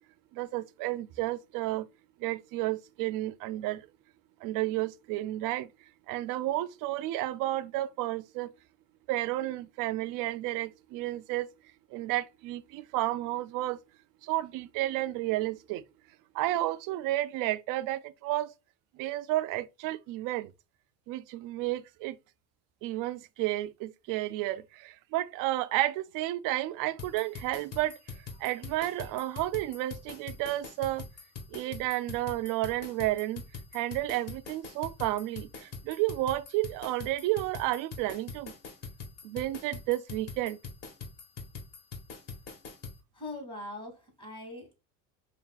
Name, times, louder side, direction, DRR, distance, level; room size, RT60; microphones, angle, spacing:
voice 1, 0.3-1.9 2.2-3.9 4.4-5.7 6.1-8.5 9.1-11.5 11.9-13.8 14.2-15.8 16.3-18.5 19.0-20.5 21.1-22.2 22.8-28.0 28.4-31.0 31.5-33.4 33.7-38.5 39.2-40.6, right 16 dB, 60° right, 0.4 m, -31 dB
sound 1, 27.0-43.0, left 5 dB, 40° left, 1.3 m, -43 dB
voice 2, 43.1-44.8, left 2 dB, 15° left, 2.1 m, -41 dB
5.5 x 2.8 x 2.3 m
supercardioid pair, 115°, 37 cm